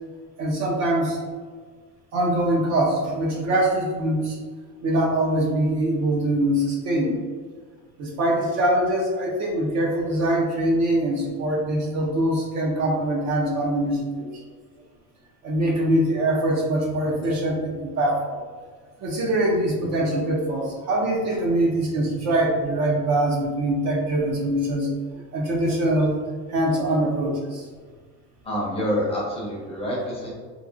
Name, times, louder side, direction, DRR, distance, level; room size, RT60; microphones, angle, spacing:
voice 1, 0.4-1.2 2.1-4.4 4.8-7.2 8.0-14.3 15.4-18.4 19.0-24.9 25.3-26.2 26.5-27.7, right 1 dB, 45° right, -3 dB, 0.6 m, -23 dB
voice 2, 28.4-30.3, equal, 15° left, -6 dB, 0.7 m, -27 dB
2.8 x 2.7 x 2.5 m, 1.5 s
cardioid pair, 155°, 39 cm